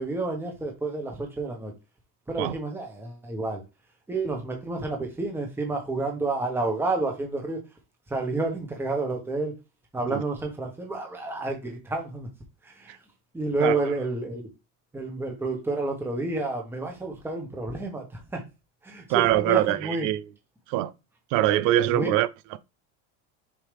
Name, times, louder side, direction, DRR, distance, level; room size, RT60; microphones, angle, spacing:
voice 1, 0.0-1.7 2.3-3.6 4.1-7.6 8.1-9.5 9.9-12.3 12.6-13.0 13.3-14.4 14.9-18.4 18.8-20.1 21.9-22.1, right 2 dB, 5° right, 1.4 m, -30 dB
voice 2, 19.1-20.2 20.7-20.9 21.3-22.6, right 14 dB, 55° right, 0.6 m, -23 dB
7.1 x 4.8 x 3.5 m
cardioid pair, 165°, 38 cm